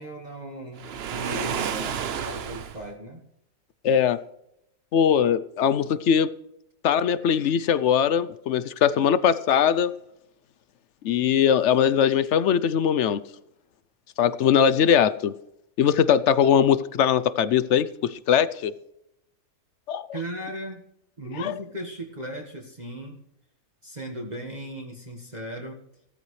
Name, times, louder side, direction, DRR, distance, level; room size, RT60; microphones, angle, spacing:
voice 1, 0.0-3.2 20.1-20.8 21.2-23.2 23.8-25.8, right 1 dB, 30° right, 1.6 m, -37 dB
Waves surf, 0.8-2.9, right 8 dB, 55° right, 0.8 m, -31 dB
voice 2, 3.8-4.2 4.9-6.3 6.8-9.9 11.0-13.2 14.2-15.3 15.8-18.7 19.9-20.0 21.4-21.5, left 8 dB, 65° left, 0.8 m, -21 dB
17.0 x 13.5 x 3.2 m
omnidirectional pair, 1.5 m